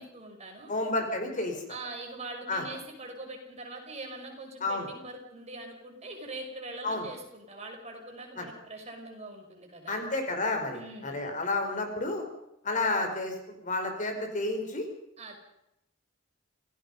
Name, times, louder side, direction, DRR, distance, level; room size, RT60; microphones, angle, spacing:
voice 1, 0.0-0.7 1.7-10.0 10.7-11.2 15.2-15.4, right 2 dB, 35° right, 2 dB, 5.8 m, -43 dB
voice 2, 0.7-1.5 2.5-2.6 4.6-4.9 6.8-7.1 8.4-8.5 9.9-12.2 12.6-13.3 13.6-14.9, left 2 dB, 40° left, 4 dB, 4.8 m, -30 dB
28.0 x 17.5 x 5.5 m, 0.83 s
head